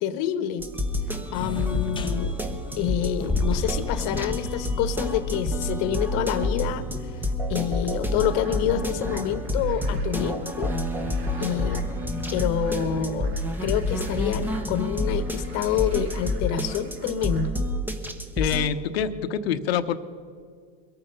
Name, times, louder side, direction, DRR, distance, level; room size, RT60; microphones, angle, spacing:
voice 1, 0.0-0.6 1.3-2.4 2.8-6.9 7.5-10.7 11.4-11.8 12.3-13.3 13.6-17.5, left 10 dB, 55° left, 13 dB, 1.2 m, -27 dB
sound 1, 0.6-18.7, left 1 dB, 5° right, 1.1 m, -29 dB
sound 2, 1.3-16.3, left 3 dB, 15° left, 0.8 m, -37 dB
sound 3, 8.4-17.5, right 4 dB, 80° right, 2.6 m, -49 dB
voice 2, 18.4-20.0, left 8 dB, 80° left, 11 dB, 1.0 m, -26 dB
22.5 x 8.9 x 5.4 m, 2.1 s
supercardioid pair, 120°, 30 cm